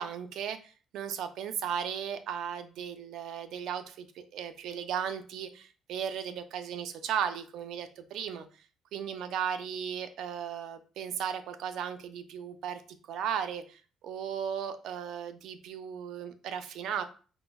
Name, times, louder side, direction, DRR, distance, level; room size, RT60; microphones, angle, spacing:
voice 1, 0.0-8.5 8.9-12.8 13.1-17.0, right 8 dB, 75° right, 9 dB, 0.4 m, -36 dB
4.8 x 2.0 x 2.2 m, 0.38 s
cardioid pair, 100°, 0 cm